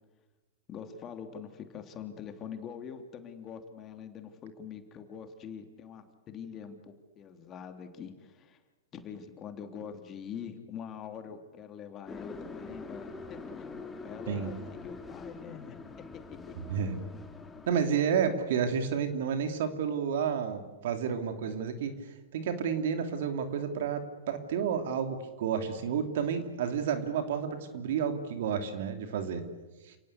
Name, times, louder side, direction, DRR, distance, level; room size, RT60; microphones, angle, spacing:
voice 1, 0.7-8.6 8.9-15.9 16.3-16.6, left 7 dB, 30° left, 6 dB, 3.2 m, -44 dB
sound 1, 12.1-17.9, left 4 dB, 15° left, 2.6 m, -44 dB
voice 2, 16.6-17.0 17.7-21.9 22.3-29.4 29.9-30.0, right 7 dB, 65° right, 7 dB, 3.0 m, -31 dB
29.5 x 18.5 x 8.3 m, 1.2 s
hypercardioid pair, 110°, 0 cm